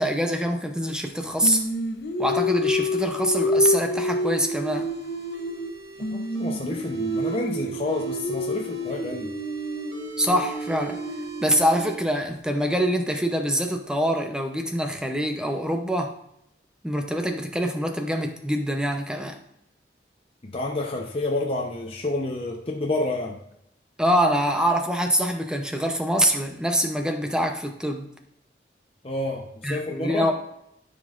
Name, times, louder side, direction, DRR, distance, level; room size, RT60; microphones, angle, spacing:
voice 1, 0.0-1.6 2.2-4.9 10.2-11.0 11.4-16.1 16.8-19.4 24.0-28.1 29.6-30.4, equal, 5° right, 4 dB, 0.6 m, -24 dB
Singing, 1.4-5.7 6.0-12.0, left 1 dB, 65° left, 0.7 m, -28 dB
sound 1, 3.4-7.4 7.9-11.9, right 5 dB, 75° right, 1.0 m, -43 dB
voice 2, 6.1-9.3 20.4-23.4 29.0-30.3, left 2 dB, 30° left, -1 dB, 0.7 m, -29 dB
13.0 x 5.2 x 2.5 m, 0.79 s
head